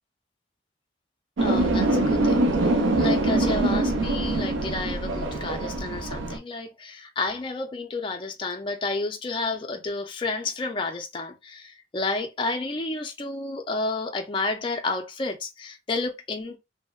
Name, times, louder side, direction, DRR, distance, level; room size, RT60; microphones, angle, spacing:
voice 1, 1.4-2.4 3.0-16.6, left 3 dB, 25° left, 0.4 m, -31 dB
sound 1, 1.4-6.4, right 2 dB, 85° right, 0.6 m, -23 dB
2.7 x 2.0 x 2.2 m
head